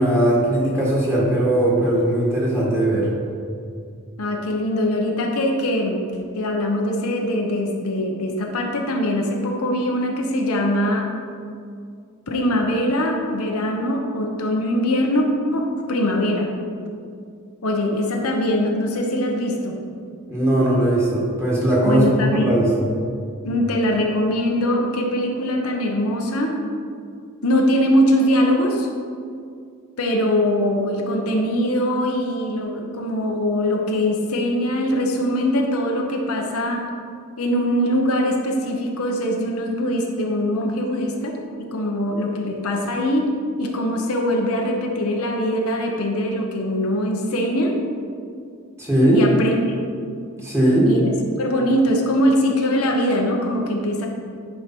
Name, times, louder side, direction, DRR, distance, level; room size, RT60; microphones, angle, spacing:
voice 1, 0.0-3.1 20.3-22.1 22.3-22.9 48.8-49.2 50.4-50.9, right 1 dB, 10° right, -7 dB, 1.9 m, -19 dB
voice 2, 4.2-6.1 6.4-11.1 12.3-15.2 15.5-16.5 17.6-19.8 21.8-22.6 23.4-26.5 27.4-28.9 30.0-36.9 37.4-41.3 41.6-43.3 43.6-47.7 49.1-49.6 50.9-54.1, equal, 80° left, 1 dB, 0.9 m, -22 dB
10.5 x 4.6 x 4.5 m, 2.3 s
head